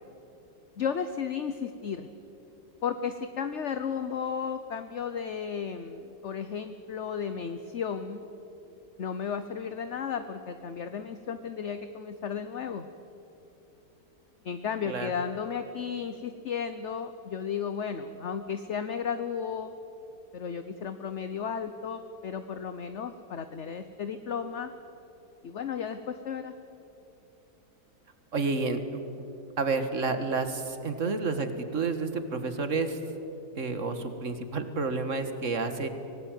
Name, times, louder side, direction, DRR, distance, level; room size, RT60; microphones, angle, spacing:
voice 1, 0.8-2.1 2.8-8.2 9.0-12.9 14.4-19.7 20.3-24.7 25.4-26.5, left 7 dB, 50° left, 9 dB, 1.0 m, -34 dB
voice 2, 28.3-28.8 29.6-33.0 33.6-35.9, right 4 dB, 50° right, 9 dB, 1.9 m, -30 dB
24.5 x 19.0 x 9.2 m, 3.0 s
omnidirectional pair, 1.8 m